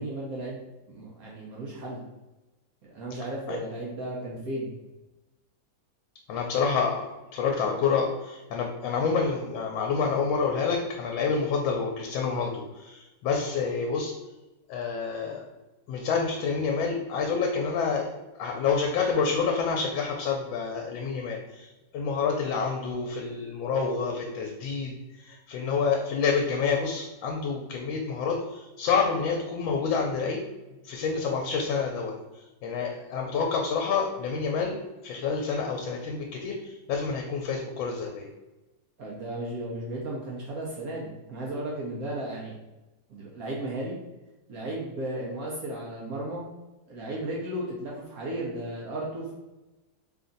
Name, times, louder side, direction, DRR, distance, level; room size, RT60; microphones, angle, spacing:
voice 1, 0.0-2.0 2.9-4.7 39.0-42.6 43.1-44.0 44.5-46.4 46.9-49.3, right 1 dB, 65° right, -4 dB, 1.0 m, -35 dB
voice 2, 6.3-14.1 14.7-15.4 15.9-30.4 30.8-38.3, left 5 dB, 80° left, 1 dB, 1.3 m, -28 dB
3.4 x 2.5 x 3.8 m, 1.1 s
omnidirectional pair, 2.1 m